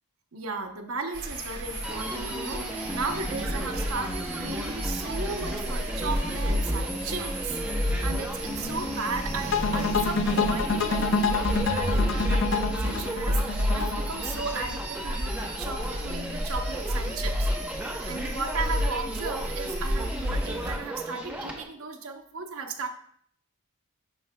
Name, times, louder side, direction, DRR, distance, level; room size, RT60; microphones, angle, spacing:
voice 1, 0.3-17.5 18.1-22.9, right 4 dB, 70° right, 4 dB, 0.8 m, -36 dB
sound 1, 1.1-20.8, equal, 50° right, 1.8 m, -31 dB
Human voice, 1.8-21.6, right 1 dB, 5° right, 0.6 m, -35 dB
sound 2, 9.5-14.6, left 4 dB, 55° left, 0.5 m, -27 dB
10.5 x 4.5 x 2.2 m, 0.63 s
head